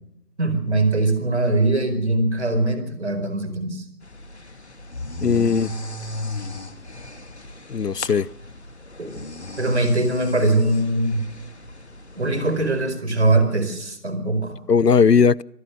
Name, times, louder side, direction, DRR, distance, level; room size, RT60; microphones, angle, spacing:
voice 1, 0.4-3.8 5.2-5.3 9.0-9.1 9.6-11.2 12.2-14.6, right 2 dB, 45° right, 4.8 m, -21 dB
sound 1, 4.0-12.8, left 2 dB, 45° left, 2.7 m, -36 dB
voice 2, 5.2-5.7 7.7-8.3 14.7-15.4, left 6 dB, 90° left, 0.7 m, -17 dB
25.5 x 16.5 x 6.7 m
figure-of-eight pair, 160°, 46 cm